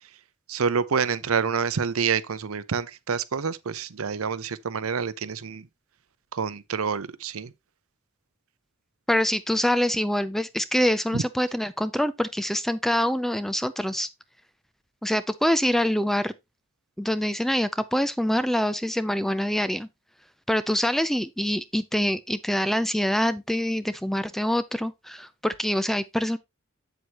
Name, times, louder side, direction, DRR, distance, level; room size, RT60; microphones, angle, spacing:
voice 1, 0.5-5.7 6.3-7.5 11.1-11.2, right 6 dB, 90° right, 0.7 m, -27 dB
voice 2, 9.1-14.1 15.0-16.3 17.0-19.9 20.5-26.4, equal, ahead, 0.4 m, -25 dB
7.9 x 7.8 x 2.9 m
head